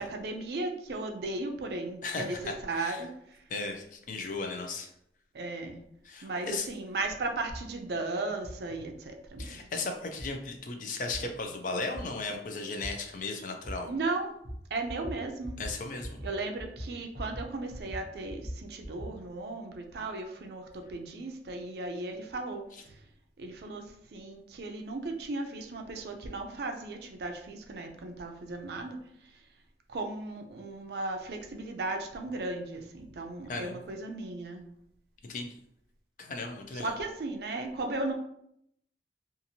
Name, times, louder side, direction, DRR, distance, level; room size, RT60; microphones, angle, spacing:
voice 1, 0.0-3.4 5.3-5.8 6.2-9.6 13.8-14.3 14.7-15.6 16.2-23.0 23.4-29.0 29.9-34.6 36.7-38.1, right 2 dB, 65° right, 4 dB, 0.4 m, -36 dB
voice 2, 2.0-3.0 3.5-4.9 6.0-6.7 9.4-13.9 15.6-16.2 22.7-22.8 33.5-33.8 35.2-35.6 36.2-36.9, left 3 dB, 45° left, 4 dB, 0.4 m, -36 dB
sound 1, 7.5-7.6 8.4-8.6 9.4-9.5 10.2-10.3 11.1-11.2 11.9-12.0 12.8-12.9 13.6-13.7 14.4-14.6 14.9-15.2 15.4-15.7 16.0-16.3 16.6-17.5 17.7-19.1, equal, 15° left, 0.8 m, -40 dB
2.8 x 2.5 x 2.6 m, 0.73 s
head